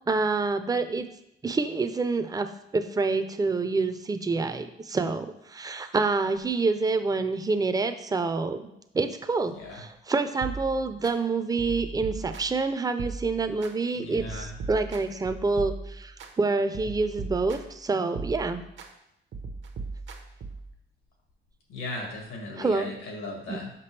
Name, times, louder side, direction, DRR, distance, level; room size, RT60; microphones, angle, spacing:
voice 1, 0.1-1.1 1.4-2.5 2.7-8.7 8.9-16.1 16.4-18.6 22.6-22.9 23.5-23.6, right 3 dB, 20° right, 9 dB, 0.5 m, -27 dB
sound 1, 10.4-11.1 11.6-12.6 13.0-13.7 14.2-16.3 16.7-17.8 18.1-18.9 19.3-20.7, right 4 dB, 70° right, 0.9 m, -38 dB
voice 2, 13.9-14.6 21.7-23.7, left 2 dB, 85° left, 0 dB, 1.8 m, -37 dB
6.0 x 5.3 x 3.3 m, 0.80 s
cardioid pair, 90°, 20 cm